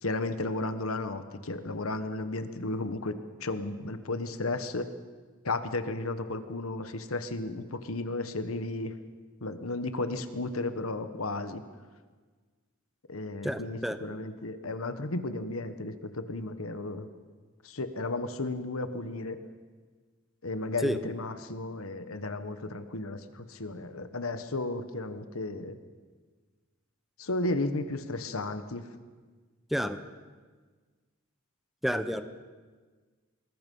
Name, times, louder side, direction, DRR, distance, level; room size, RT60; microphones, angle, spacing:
voice 1, 0.0-4.9 5.4-8.9 9.4-11.6 13.1-17.1 17.6-19.4 20.4-25.8 27.2-28.9, left 2 dB, 85° left, 10 dB, 1.4 m, -34 dB
voice 2, 13.4-14.0 20.8-21.0 29.7-30.0 31.8-32.2, equal, ahead, 9 dB, 0.9 m, -29 dB
24.5 x 20.5 x 5.5 m, 1.4 s
head